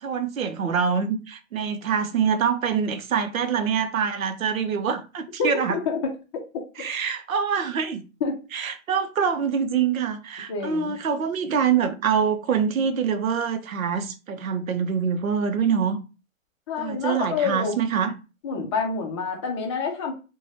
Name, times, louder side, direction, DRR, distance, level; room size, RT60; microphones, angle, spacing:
voice 1, 0.0-5.8 6.8-8.0 8.5-16.0 16.8-18.1, right 7 dB, 90° right, 0.7 m, -25 dB
voice 2, 5.4-6.0 8.2-8.3 10.5-10.9 16.7-17.8 18.4-20.1, left 5 dB, 25° left, 0.4 m, -27 dB
2.6 x 2.2 x 3.2 m
hypercardioid pair, 130°, 40 cm